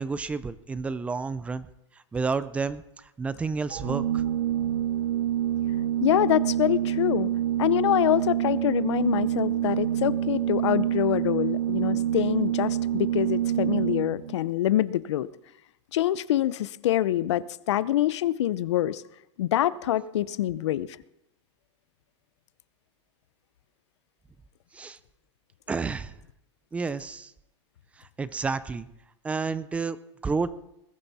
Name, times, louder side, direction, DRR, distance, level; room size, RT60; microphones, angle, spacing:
voice 1, 0.0-1.7 2.1-4.3 24.7-25.0 25.7-26.1 26.7-27.3 28.0-28.9 29.2-30.0 30.2-30.5, right 4 dB, 10° right, 15 dB, 0.5 m, -30 dB
Organ, 3.7-14.4, right 11 dB, 90° right, 1.6 m, -27 dB
voice 2, 6.0-7.3 7.6-15.3 15.9-19.0 19.4-21.0, left 13 dB, 80° left, 17 dB, 0.7 m, -25 dB
21.0 x 12.5 x 4.2 m, 0.84 s
supercardioid pair, 155°, 15 cm